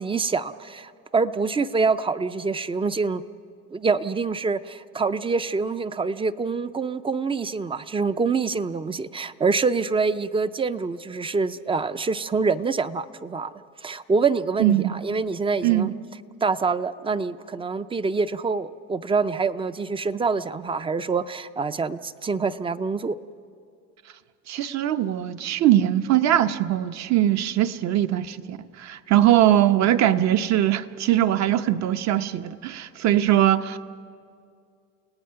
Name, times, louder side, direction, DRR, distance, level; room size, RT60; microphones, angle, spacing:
voice 1, 0.0-3.2 3.7-13.5 13.8-15.9 16.4-23.2, right 4 dB, 15° right, 0.4 m, -25 dB
voice 2, 14.6-15.0 15.6-15.9 24.5-33.8, right 12 dB, 55° right, 0.8 m, -21 dB
29.5 x 18.0 x 5.7 m
cardioid pair, 120°, 34 cm